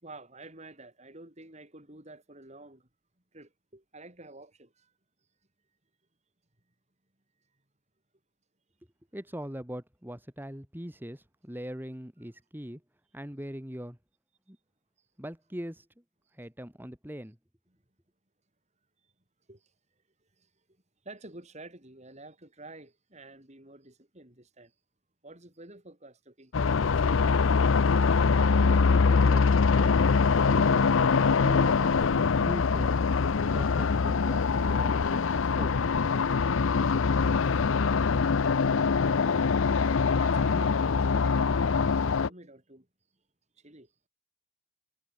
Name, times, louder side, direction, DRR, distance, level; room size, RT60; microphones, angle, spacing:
voice 1, 0.0-2.9 3.3-4.9 19.5-19.6 20.4-20.5 21.0-24.7 25.2-27.9 40.2-42.9 43.6-43.9, right 2 dB, 35° right, 4.9 m, -50 dB
voice 2, 9.1-12.8 13.1-14.0 14.5-14.6 15.2-15.9 16.3-17.4 28.9-32.9 33.5-36.1, equal, 10° right, 3.6 m, -41 dB
sound 1, 26.5-42.3, left 5 dB, 85° left, 0.6 m, -24 dB
head